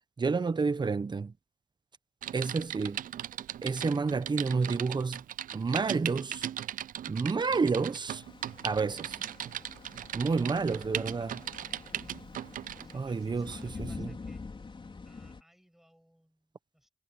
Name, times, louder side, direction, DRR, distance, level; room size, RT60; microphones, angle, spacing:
voice 1, 0.2-1.3 2.3-3.0 3.6-5.2 5.5-6.5 7.1-8.2 8.6-9.1 10.1-11.4 12.9-14.1, right 4 dB, 30° right, 0.9 m, -30 dB
Typing, 2.2-12.9 13.5-13.7, right 11 dB, 75° right, 0.5 m, -38 dB
sound 1, 8.2-15.4, left 4 dB, 35° left, 4.6 m, -46 dB
voice 2, 12.7-14.4 15.0-16.9, equal, ahead, 6.5 m, -63 dB
cardioid pair, 85°, 14 cm